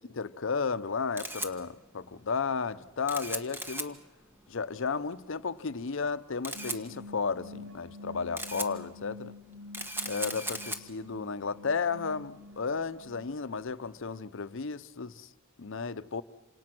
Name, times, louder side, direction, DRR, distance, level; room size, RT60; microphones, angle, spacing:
voice 1, 0.1-4.0 4.5-9.3 10.0-15.3 15.6-16.2, left 5 dB, 65° left, 0.7 m, -33 dB
Camera, 0.8-14.2, right 1 dB, 10° right, 1.6 m, -41 dB
sound 1, 6.5-13.4, left 3 dB, 85° right, 1.2 m, -47 dB
28.0 x 27.0 x 6.1 m
head